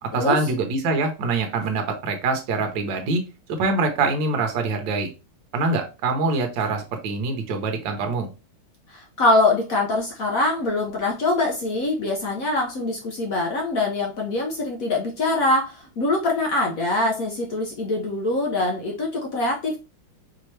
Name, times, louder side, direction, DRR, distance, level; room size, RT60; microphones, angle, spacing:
voice 1, 0.0-3.2 3.6-5.1 5.5-8.3, right 3 dB, 65° right, 4 dB, 1.5 m, -24 dB
voice 2, 8.9-19.8, left 2 dB, 60° left, 0 dB, 0.9 m, -23 dB
5.0 x 2.9 x 3.1 m, 0.30 s
omnidirectional pair, 2.3 m